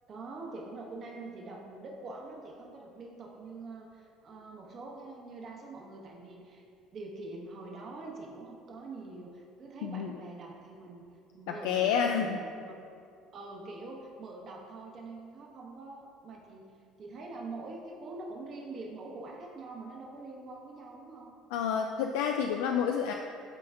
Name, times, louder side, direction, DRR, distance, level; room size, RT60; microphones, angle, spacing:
voice 1, 0.1-6.6 6.9-11.1 11.3-12.4 12.6-12.8 13.3-16.7 17.0-21.4, right 3 dB, 50° right, -1 dB, 1.3 m, -44 dB
voice 2, 11.6-12.4 21.5-23.1, left 7 dB, 80° left, 3 dB, 0.3 m, -29 dB
11.5 x 4.2 x 2.5 m, 2.4 s
supercardioid pair, 80°, 0 cm